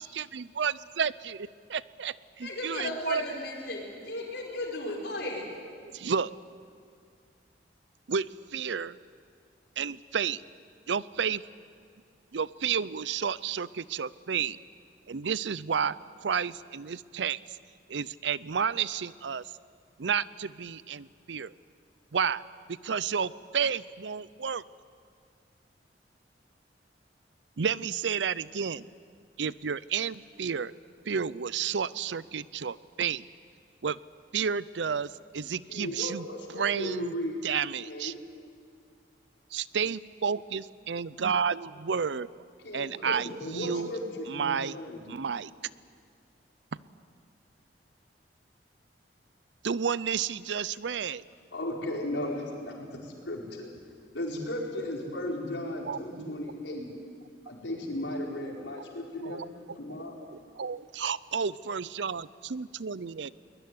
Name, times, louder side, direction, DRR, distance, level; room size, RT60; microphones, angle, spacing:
voice 1, 0.0-3.2 5.8-6.3 8.1-9.0 9.8-10.4 10.9-11.4 12.3-14.6 15.1-16.0 16.2-17.6 17.9-19.5 20.0-21.5 22.1-22.4 22.7-24.6 27.6-28.9 29.4-30.7 31.1-33.2 33.8-34.0 34.3-37.1 37.4-38.1 39.5-42.4 42.7-43.9 44.3-44.8 45.1-45.5 49.6-51.2 55.8-56.3 58.7-58.8 59.2-59.5 60.3-63.3, right 6 dB, 80° right, 19 dB, 0.6 m, -31 dB
voice 2, 2.4-5.5, left 2 dB, 65° left, -1 dB, 4.9 m, -35 dB
voice 3, 35.7-37.5 37.9-38.1 42.6-45.0 51.5-53.7 54.1-56.9 57.4-59.4 59.7-60.2, left 1 dB, 80° left, -1 dB, 4.8 m, -35 dB
22.5 x 20.0 x 9.6 m, 2.2 s
head